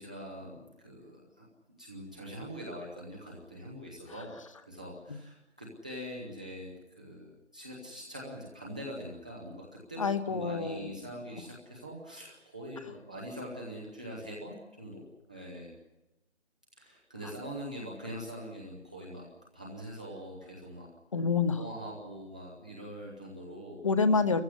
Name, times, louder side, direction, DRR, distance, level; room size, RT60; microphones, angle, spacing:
voice 1, 0.0-1.5 1.8-4.4 4.7-15.7 16.8-19.3 19.5-20.9 21.6-23.8, equal, 5° right, -4 dB, 0.7 m, -43 dB
voice 2, 10.0-10.9 21.1-21.6 23.8-24.4, left 4 dB, 30° left, 11 dB, 1.1 m, -27 dB
26.5 x 15.0 x 9.6 m, 1.0 s
figure-of-eight pair, 160°, 34 cm